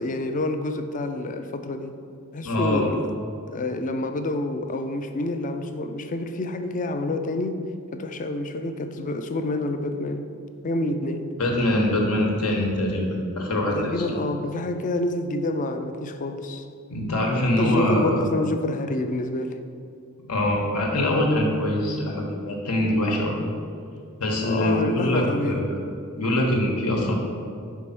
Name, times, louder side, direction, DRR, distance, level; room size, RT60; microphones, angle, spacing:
voice 1, 0.0-1.9 2.3-3.0 3.5-7.6 7.9-10.3 10.6-11.3 13.7-16.6 17.4-19.6 24.4-25.7, left 2 dB, 35° left, 7 dB, 0.4 m, -28 dB
voice 2, 2.4-2.8 11.4-14.1 16.9-18.3 20.3-23.4 24.2-25.8 26.2-27.2, left 1 dB, 80° left, 0 dB, 1.2 m, -23 dB
5.3 x 4.6 x 5.9 m, 2.3 s
head